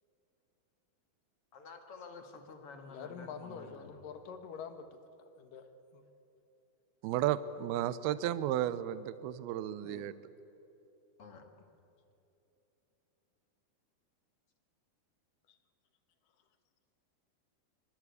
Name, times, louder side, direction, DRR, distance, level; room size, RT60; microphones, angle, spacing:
voice 1, 1.5-4.0 11.2-11.5, left 4 dB, 45° left, 5 dB, 2.6 m, -50 dB
voice 2, 2.9-5.0 5.4-6.0 9.8-10.2 15.5-15.6, left 6 dB, 65° left, 8 dB, 3.0 m, -46 dB
voice 3, 7.0-10.1, right 12 dB, 85° right, 15 dB, 2.7 m, -33 dB
26.5 x 24.5 x 8.4 m, 3.0 s
omnidirectional pair, 4.4 m